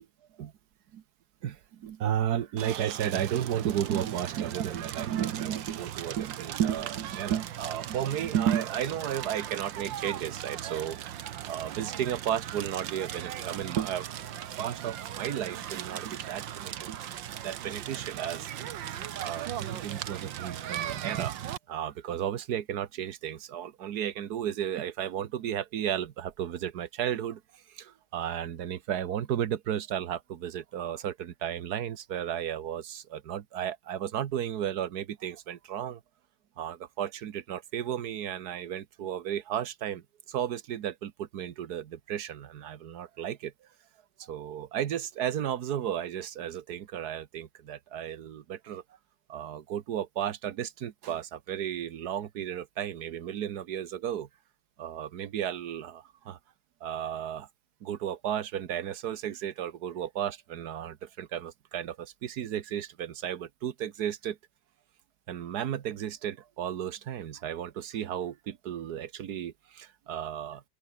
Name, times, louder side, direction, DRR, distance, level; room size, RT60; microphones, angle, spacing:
voice 1, 1.4-14.0 14.6-17.0 17.4-18.5 18.9-21.4 21.7-27.4 27.7-36.0 36.6-43.5 44.2-48.8 49.3-54.3 54.8-56.4 56.8-57.5 57.8-64.4 65.3-70.6, right 10 dB, 60° right, 1.5 m, -33 dB
Crackle, 2.6-21.6, right 11 dB, 80° right, 1.8 m, -38 dB
open air
omnidirectional pair, 2.0 m